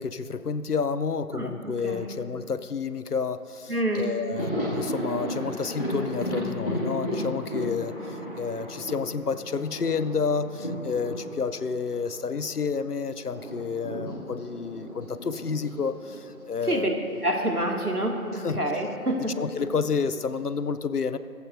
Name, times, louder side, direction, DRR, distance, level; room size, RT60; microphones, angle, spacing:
voice 1, 0.0-17.0 18.3-18.6 19.4-21.2, left 5 dB, 75° left, 13 dB, 0.7 m, -30 dB
voice 2, 1.3-2.1 3.7-4.1 16.7-16.9 17.2-19.3, right 1 dB, 70° right, 1 dB, 2.2 m, -27 dB
Thunder, 3.9-12.7 13.0-17.3 17.6-17.7 18.9-19.6, equal, 35° left, 2.3 m, -34 dB
20.5 x 15.0 x 2.6 m, 2.7 s
figure-of-eight pair, 180°, 47 cm